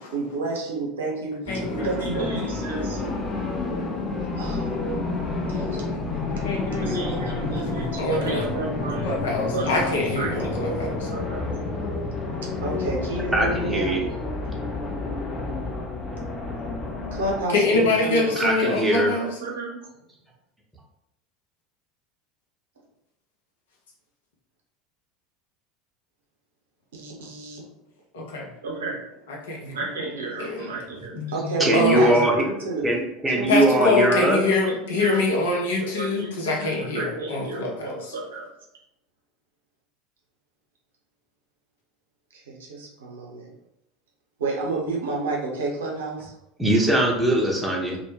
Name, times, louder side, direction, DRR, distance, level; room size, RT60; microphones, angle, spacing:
voice 1, 0.1-3.1 4.4-4.8 5.5-9.2 9.5-10.5 11.3-11.5 12.4-14.0 17.1-18.5 19.1-19.8 26.9-27.6 28.6-29.0 29.7-32.8 33.3-34.1 34.5-35.2 35.7-38.5 42.3-43.5 44.4-46.3, right 3 dB, 75° right, -3 dB, 0.7 m, -31 dB
voice 2, 1.5-1.9 2.1-2.3 6.3-7.7 8.0-8.5 9.0-11.1 17.5-19.3 28.1-28.5 29.3-29.8 30.4-30.7 31.2-32.2 33.5-38.0, left 3 dB, 70° left, -1 dB, 0.6 m, -25 dB
sound 1, 1.5-17.4, left 3 dB, 30° left, 0.5 m, -29 dB
voice 3, 13.3-14.0 18.4-19.1 31.6-32.3 32.8-34.4 46.6-48.0, right 1 dB, 10° right, -1 dB, 0.7 m, -21 dB
2.1 x 2.1 x 3.1 m, 0.81 s
figure-of-eight pair, 75°, 0 cm